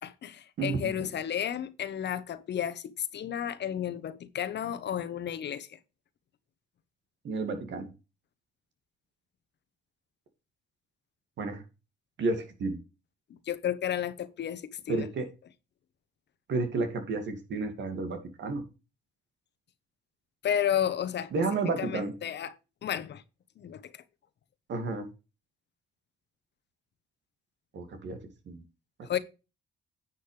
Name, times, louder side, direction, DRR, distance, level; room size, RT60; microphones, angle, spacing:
voice 1, 0.0-5.8 13.5-15.1 20.4-21.3 21.6-22.5 22.8-23.2 23.6-23.8 29.0-29.2, left 9 dB, 60° left, 1.1 m, -32 dB
voice 2, 0.6-0.9 7.2-7.9 11.4-11.6 12.2-12.8 14.9-15.3 16.5-18.6 21.3-22.1 24.7-25.1 27.7-28.2 28.5-28.6, right 3 dB, 65° right, 2.4 m, -31 dB
9.8 x 7.7 x 3.4 m
cardioid pair, 90°, 20 cm